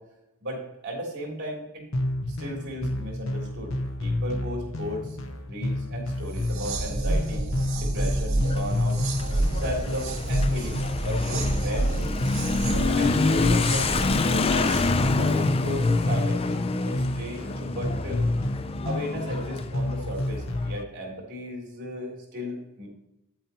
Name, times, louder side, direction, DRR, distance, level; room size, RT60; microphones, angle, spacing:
voice 1, 0.4-1.8 2.3-5.2 5.5-7.4 7.7-9.0 9.5-12.2 12.6-14.8 15.1-16.4 16.8-18.3 18.8-22.9, equal, 55° right, -2 dB, 3.2 m, -35 dB
sound 1, 1.9-20.8, left 1 dB, 70° left, 0.9 m, -30 dB
sound 2, 6.3-15.4, right 2 dB, 70° right, 1.3 m, -29 dB
Motorcycle / Accelerating revving vroom, 8.4-20.7, left 3 dB, 25° left, 0.4 m, -28 dB
8.6 x 8.6 x 2.9 m, 0.91 s
head